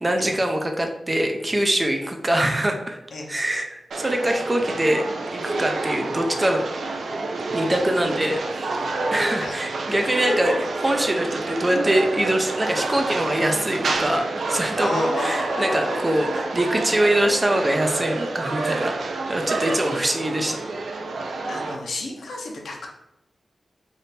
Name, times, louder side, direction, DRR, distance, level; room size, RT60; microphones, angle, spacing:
voice 1, 0.0-3.0 3.3-5.0 5.3-6.6 7.5-10.5 10.8-18.9 19.3-20.6, right 1 dB, 20° right, 4 dB, 0.5 m, -23 dB
sound 1, 3.9-21.8, right 3 dB, 85° right, 0.4 m, -28 dB
voice 2, 14.8-16.0 21.5-22.9, left 2 dB, 80° left, 0 dB, 0.8 m, -30 dB
3.5 x 2.6 x 4.1 m, 0.87 s
wide cardioid pair, 155°, 0 cm